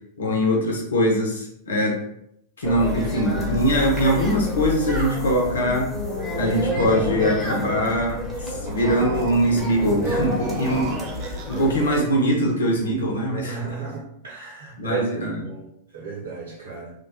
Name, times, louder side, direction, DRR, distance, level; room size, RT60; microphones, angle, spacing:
voice 1, 0.2-2.0 2.6-5.9 6.4-13.6 14.8-15.4, equal, 65° left, -1 dB, 0.7 m, -22 dB
sound 1, 2.6-12.0, left 2 dB, 15° left, 1.1 m, -29 dB
sound 2, 8.4-9.7 10.2-11.9, right 5 dB, 45° right, 0.4 m, -36 dB
voice 2, 9.9-10.8 13.3-15.1 15.4-16.9, right 5 dB, 65° right, -4 dB, 1.0 m, -34 dB
2.9 x 2.2 x 2.7 m, 0.74 s
figure-of-eight pair, 90°, 0 cm